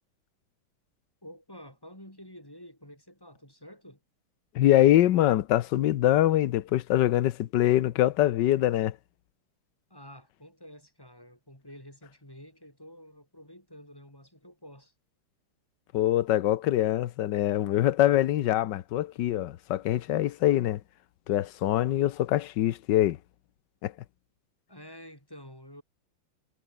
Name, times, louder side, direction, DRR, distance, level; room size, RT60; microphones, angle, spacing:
voice 1, 1.2-4.0 9.9-14.9 24.7-25.8, equal, 10° left, 4.5 m, -49 dB
voice 2, 4.5-9.0 15.9-20.8 21.3-23.2 23.8-23.9, left 13 dB, 65° left, 1.3 m, -24 dB
omnidirectional pair, 2.4 m